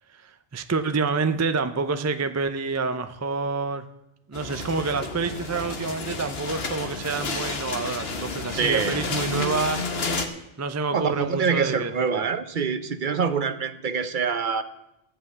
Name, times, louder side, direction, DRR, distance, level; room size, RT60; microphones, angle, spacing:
voice 1, 0.1-3.9 4.3-9.9 10.6-12.3, right 4 dB, 25° right, 10 dB, 0.4 m, -28 dB
sound 1, 4.3-10.3, left 3 dB, 75° left, 1.4 m, -31 dB
voice 2, 8.6-9.0 10.9-14.6, right 6 dB, 55° right, 11 dB, 0.9 m, -25 dB
16.0 x 5.7 x 7.9 m, 0.87 s
omnidirectional pair, 1.0 m